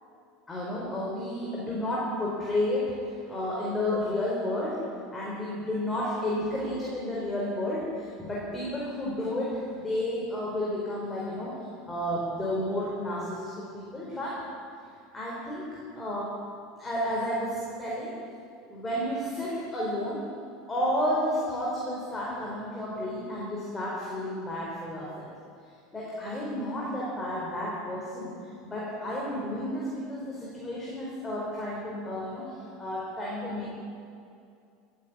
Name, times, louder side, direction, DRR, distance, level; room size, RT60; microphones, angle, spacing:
voice 1, 0.5-3.0 3.2-4.8 5.1-14.4 15.1-16.4 16.8-18.2 18.7-20.2 20.7-25.3 25.9-28.3 28.6-33.7, left 1 dB, 20° left, -5 dB, 4.5 m, -31 dB
15.5 x 9.6 x 8.7 m, 2.5 s
hypercardioid pair, 80°, 0 cm